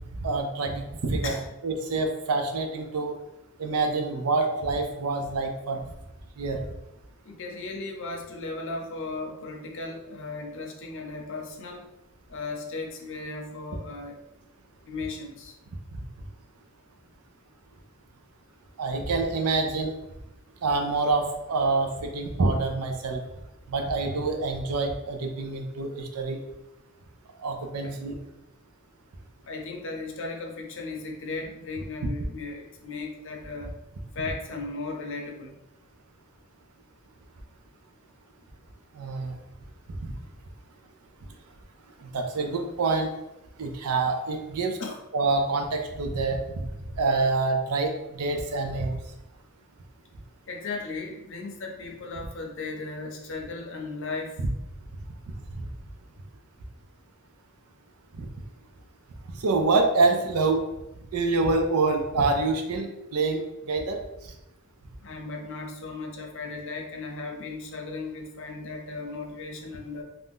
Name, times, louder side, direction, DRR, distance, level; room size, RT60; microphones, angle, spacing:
voice 1, 0.1-1.3 1.6-3.2 3.6-5.8 6.4-6.6 15.9-16.0 18.8-19.9 20.6-23.2 23.7-26.4 27.4-28.2 38.9-39.3 39.9-40.1 42.0-43.1 43.6-44.8 45.1-46.7 47.0-49.0 55.6-55.7 58.2-58.3 59.3-60.6 61.1-64.0, right 3 dB, 90° right, 4 dB, 0.5 m, -26 dB
voice 2, 7.3-11.8 12.3-14.2 14.8-15.5 27.8-27.9 29.5-33.7 34.2-35.6 44.8-45.0 50.5-54.4 65.0-70.0, left 3 dB, 60° left, 1 dB, 0.6 m, -36 dB
2.6 x 2.2 x 3.5 m, 0.92 s
head